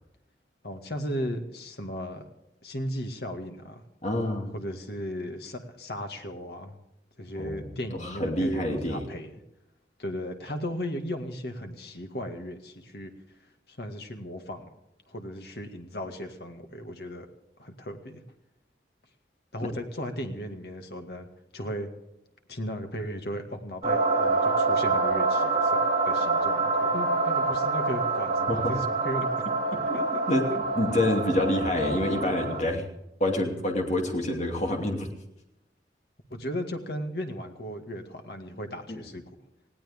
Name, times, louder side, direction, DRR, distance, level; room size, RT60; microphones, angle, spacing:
voice 1, 0.6-2.2 2.6-3.8 4.5-6.8 7.2-9.3 10.0-13.1 13.7-14.7 15.1-17.3 17.6-18.2 19.5-21.3 21.5-21.9 22.5-29.3 29.9-30.2 30.5-30.6 36.3-39.2, equal, 60° left, 5 dB, 2.0 m, -36 dB
voice 2, 4.0-4.5 7.4-7.7 8.0-9.1 28.5-28.7 29.9-30.0 30.3-32.9 33.2-35.1 38.9-39.0, left 1 dB, 40° left, 2 dB, 2.8 m, -27 dB
sound 1, 23.8-32.6, right 3 dB, 35° right, 4.3 m, -26 dB
19.5 x 16.5 x 3.6 m, 0.87 s
head